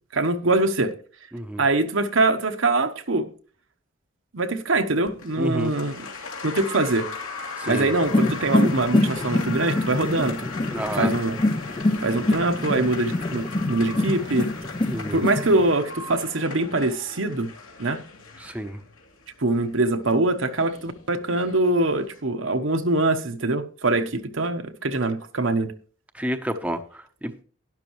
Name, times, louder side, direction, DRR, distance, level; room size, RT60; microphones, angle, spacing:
voice 1, 0.1-0.9 1.6-3.3 4.3-6.1 6.4-7.1 7.7-10.5 10.9-11.4 12.0-14.5 15.1-17.5 17.8-18.0 19.4-25.7, right 2 dB, 70° right, 1.1 m, -23 dB
voice 2, 1.3-1.6 5.4-5.7 7.6-7.9 10.7-11.1 14.9-15.2 18.4-18.8 26.1-27.4, equal, 5° right, 0.8 m, -30 dB
Applause, 5.1-22.2, left 4 dB, 80° left, 2.6 m, -38 dB
sound 1, 8.0-15.7, left 2 dB, 25° left, 0.4 m, -25 dB
12.0 x 11.0 x 3.1 m
head